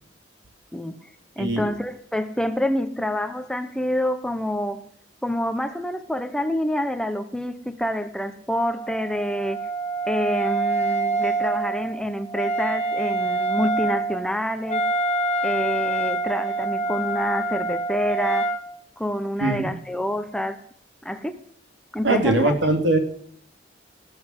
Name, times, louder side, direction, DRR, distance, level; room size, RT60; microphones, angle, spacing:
voice 1, 1.4-4.8 5.2-9.6 10.1-14.8 15.4-18.5 19.0-20.6 21.0-21.4 21.9-22.5, equal, 5° left, 9 dB, 0.9 m, -27 dB
Wind instrument woodwind instrument, 8.6-18.6, right 2 dB, 35° left, 1.9 m, -26 dB
voice 2, 19.4-19.8 22.0-23.0, right 2 dB, 75° right, 5 dB, 3.3 m, -21 dB
19.0 x 7.9 x 8.2 m, 0.65 s
head